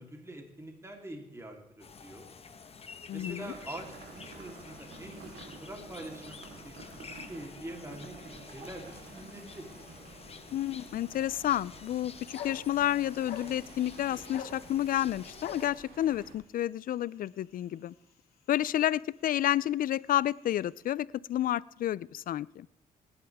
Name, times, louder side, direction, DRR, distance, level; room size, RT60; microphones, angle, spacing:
voice 1, 0.0-2.3 3.1-9.7, right 1 dB, 15° right, 2 dB, 3.5 m, -45 dB
sound 1, 1.8-15.7, left 5 dB, 40° left, 1.3 m, -50 dB
voice 2, 3.1-3.5 10.5-17.9 18.5-22.7, left 12 dB, 65° left, 22 dB, 0.5 m, -30 dB
sound 2, 3.4-16.3, right 3 dB, 75° right, 3.8 m, -51 dB
sound 3, 10.5-20.9, left 7 dB, 80° left, 2.7 m, -50 dB
19.5 x 11.0 x 3.6 m, 0.86 s
cardioid pair, 75°, 16 cm